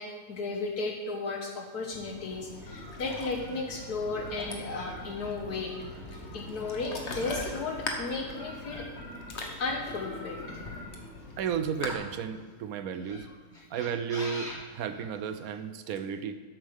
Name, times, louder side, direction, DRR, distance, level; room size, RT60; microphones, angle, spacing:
voice 1, 0.0-5.7 6.1-8.9 9.4-10.6 11.0-11.1, left 3 dB, 70° left, 1 dB, 1.7 m, -35 dB
Ocean, 1.9-11.9, left 2 dB, 45° left, 1.4 m, -41 dB
sound 1, 2.7-9.5 9.9-12.2 12.9-15.6, left 1 dB, ahead, 3.0 m, -45 dB
voice 2, 11.4-13.3 13.7-16.3, right 7 dB, 65° right, 10 dB, 1.1 m, -33 dB
12.0 x 8.3 x 3.6 m, 1.5 s
omnidirectional pair, 1.7 m